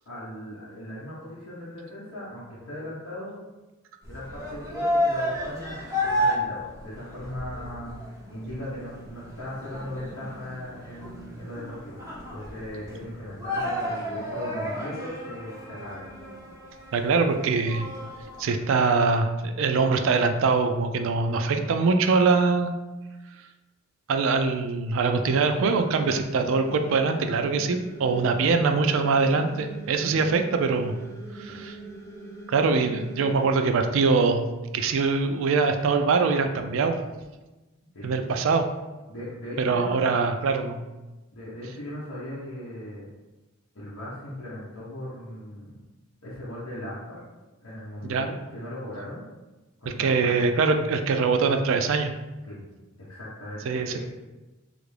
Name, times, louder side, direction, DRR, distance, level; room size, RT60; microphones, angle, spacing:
voice 1, 0.1-3.4 4.1-12.0 12.3-16.0 30.1-30.3 31.5-31.6 37.9-38.1 39.1-39.9 41.3-43.1 43.7-45.8 46.2-47.2 47.6-49.2 49.8-50.5 52.4-52.6 53.1-54.0, left 1 dB, 75° left, -9 dB, 0.9 m, -38 dB
sound 1, 4.0-18.4, equal, 15° right, 0.8 m, -32 dB
voice 2, 16.9-17.9 18.4-22.7 24.1-30.9 31.3-31.8 32.5-34.4 34.7-37.0 38.0-38.7 39.6-40.8 48.0-48.3 49.9-52.1 53.7-54.0, right 4 dB, 65° right, 7 dB, 0.3 m, -23 dB
sound 2, 25.2-33.5, right 3 dB, 15° left, 0.4 m, -42 dB
3.3 x 2.5 x 3.2 m, 1.1 s
head